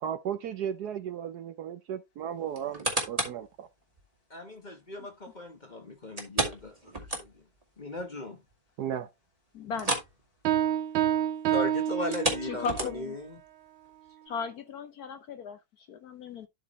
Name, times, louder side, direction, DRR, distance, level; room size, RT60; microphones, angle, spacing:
voice 1, 0.0-3.7 8.8-9.1, right 9 dB, 65° right, 1.1 m, -35 dB
sound 1, 2.5-3.5 4.0-4.1 6.2-7.6 8.0-8.1 8.5-8.6 9.7-10.2 10.4-10.7 12.0-13.2 13.8-13.9, right 1 dB, 20° right, 2.3 m, -32 dB
voice 2, 4.3-7.3 7.8-8.4 11.5-13.4, left 2 dB, 30° left, 0.9 m, -37 dB
voice 3, 9.5-9.9 12.4-13.2 14.3-16.5, left 5 dB, 60° left, 1.1 m, -37 dB
Piano, 10.4-12.8, right 11 dB, 85° right, 1.5 m, -28 dB
12.0 x 5.0 x 3.0 m
omnidirectional pair, 2.1 m